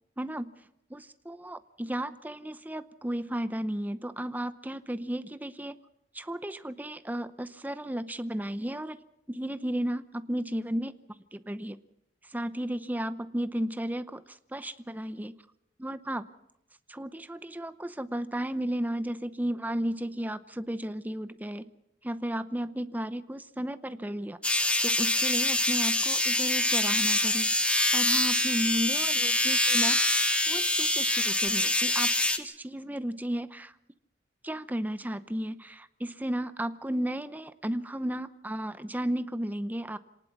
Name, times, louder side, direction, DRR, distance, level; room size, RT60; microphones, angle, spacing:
voice 1, 0.2-0.5 0.9-5.8 6.1-9.0 9.3-11.0 11.3-11.8 12.3-15.4 15.8-16.3 16.9-21.7 22.0-30.2 30.5-33.7 34.4-40.0, right 1 dB, 10° right, 12 dB, 0.7 m, -34 dB
sound 1, 24.4-32.4, left 1 dB, 5° left, 1.3 m, -25 dB
26.5 x 19.0 x 6.0 m, 0.82 s
head